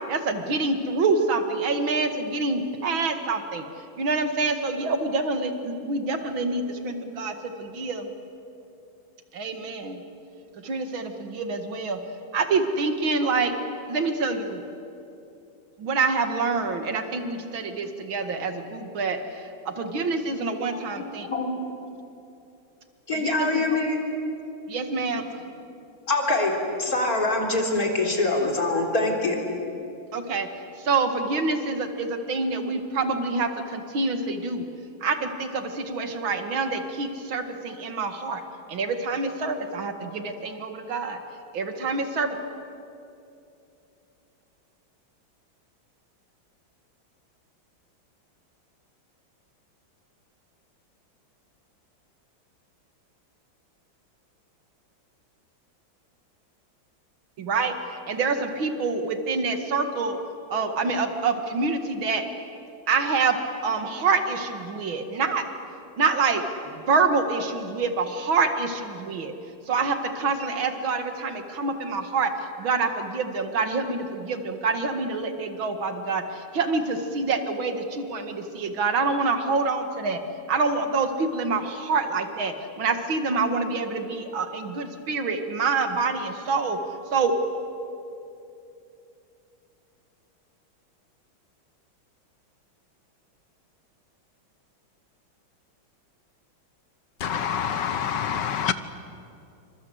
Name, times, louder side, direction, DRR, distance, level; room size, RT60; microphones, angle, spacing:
voice 1, 0.1-3.6 4.0-8.1 9.3-10.0 10.6-12.0 12.3-13.5 13.9-14.6 15.8-21.3 23.1-23.8 24.7-25.3 30.1-30.5 30.8-34.7 35.0-38.4 38.7-41.2 41.5-42.3 57.4-60.2 60.5-62.2 62.9-65.4 66.0-69.3 69.7-72.3 72.6-80.2 80.5-86.8 87.1-87.3, right 4 dB, 80° right, 7 dB, 2.6 m, -26 dB
voice 2, 21.2-21.5 23.1-24.0 26.1-26.5 26.8-29.4, left 2 dB, 45° left, 1 dB, 4.0 m, -24 dB
voice 3, 97.2-98.7, left 8 dB, 65° left, 12 dB, 1.6 m, -26 dB
27.5 x 25.0 x 8.1 m, 2.8 s
omnidirectional pair, 2.2 m